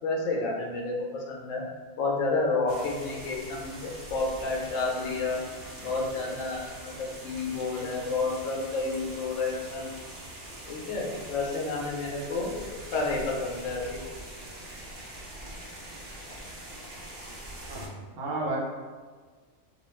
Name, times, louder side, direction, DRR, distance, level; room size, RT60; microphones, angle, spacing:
voice 1, 0.0-1.6 2.0-5.4 5.8-9.9 10.7-12.5 12.9-14.0, left 3 dB, 90° left, -1 dB, 1.0 m, -30 dB
sound 1, 2.7-17.9, right 1 dB, 65° right, 0.7 m, -43 dB
voice 2, 17.7-18.6, right 2 dB, 80° right, -4 dB, 1.0 m, -33 dB
2.3 x 2.2 x 3.1 m, 1.5 s
omnidirectional pair, 1.3 m